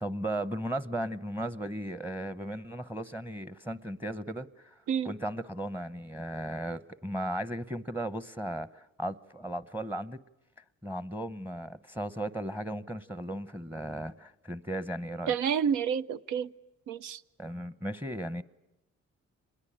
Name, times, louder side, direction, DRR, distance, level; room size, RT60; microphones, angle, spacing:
voice 1, 0.0-4.7 5.0-10.2 10.8-15.3 17.4-18.4, right 1 dB, 5° right, 0.8 m, -36 dB
voice 2, 15.3-16.5 16.9-17.2, right 7 dB, 85° right, 0.8 m, -29 dB
26.5 x 21.5 x 8.7 m
cardioid pair, 90°, 30 cm